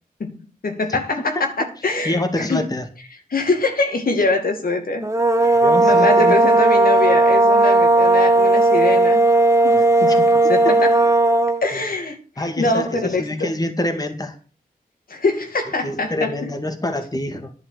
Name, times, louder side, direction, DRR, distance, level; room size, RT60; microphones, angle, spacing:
voice 1, 0.2-1.5 1.8-2.6 3.3-5.1 5.4-9.2 9.6-10.9 11.6-12.2 12.6-13.5 15.1-16.5, left 3 dB, 75° left, 2.4 m, -23 dB
voice 2, 1.3-1.7 2.0-2.9 5.5-6.5 9.7-10.2 10.6-10.7 11.7-11.8 12.4-14.4 15.8-17.5, left 1 dB, 25° left, 2.1 m, -26 dB
sound 1, 5.0-11.6, right 2 dB, 20° right, 1.1 m, -15 dB
11.0 x 5.8 x 8.0 m
wide cardioid pair, 75°, 15 cm